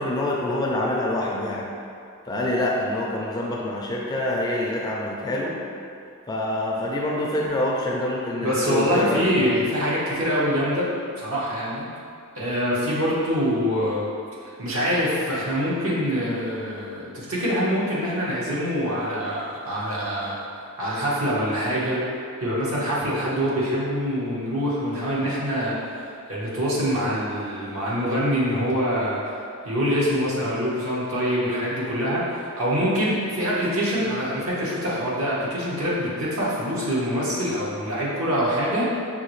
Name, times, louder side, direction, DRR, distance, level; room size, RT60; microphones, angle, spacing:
voice 1, 0.0-1.7 2.3-5.6 6.3-9.5, left 1 dB, 20° left, -3 dB, 0.4 m, -26 dB
voice 2, 8.4-10.9 11.2-11.9 12.3-14.1 14.6-20.4 20.8-22.0 22.4-29.2 29.6-39.0, equal, 70° right, -7 dB, 1.1 m, -25 dB
5.6 x 2.6 x 3.1 m, 2.5 s
head